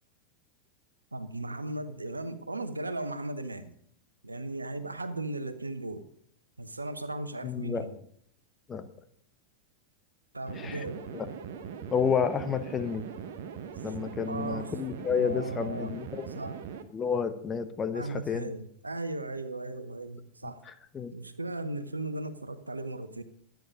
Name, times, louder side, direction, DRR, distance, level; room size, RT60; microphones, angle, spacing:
voice 1, 1.1-3.7 4.2-6.1 6.6-8.0 10.3-11.0 14.3-14.7 15.1-16.0 16.3-16.6 17.9-20.6 21.1-23.2, right 2 dB, 80° right, 1.0 m, -36 dB
voice 2, 7.4-7.9 8.7-8.8 10.6-10.8 11.1-11.3 11.9-13.0 13.8-16.3 16.9-18.5 20.7-21.1, left 6 dB, 20° left, 1.0 m, -30 dB
sound 1, 10.5-16.8, right 7 dB, 55° right, 1.1 m, -41 dB
13.5 x 9.3 x 5.2 m
figure-of-eight pair, 90°, 0 cm